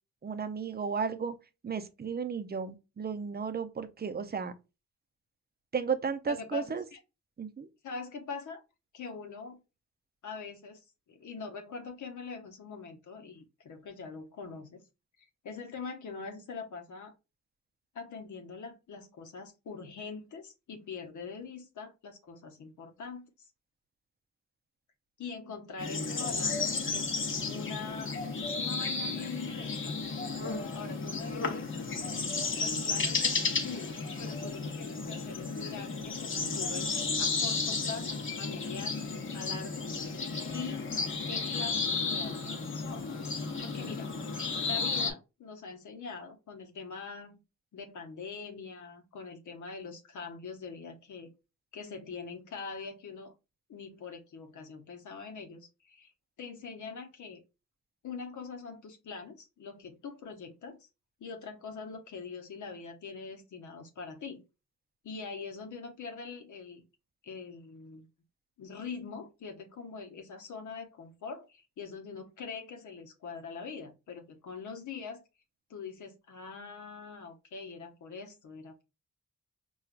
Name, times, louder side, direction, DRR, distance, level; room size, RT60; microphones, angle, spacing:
voice 1, 0.2-1.4 1.6-4.5 5.7-6.8 7.4-7.7, right 6 dB, 35° right, 0.5 m, -34 dB
voice 2, 6.3-7.0 7.8-8.6 8.9-9.6 10.2-14.8 15.2-17.1 17.9-23.5 25.2-30.0 30.7-31.7 32.5-39.1 39.3-39.9 40.2-40.8 41.2-43.1 43.6-44.1 44.6-47.4 47.7-51.3 51.7-53.3 53.7-56.1 56.4-57.4 58.0-60.9 61.2-64.4 65.0-66.8 67.2-68.1 68.6-75.2 75.7-78.8, left 5 dB, 85° left, 0.8 m, -43 dB
sound 1, 25.8-45.1, left 4 dB, 45° left, 0.9 m, -33 dB
4.4 x 2.3 x 2.4 m
cardioid pair, 75°, 29 cm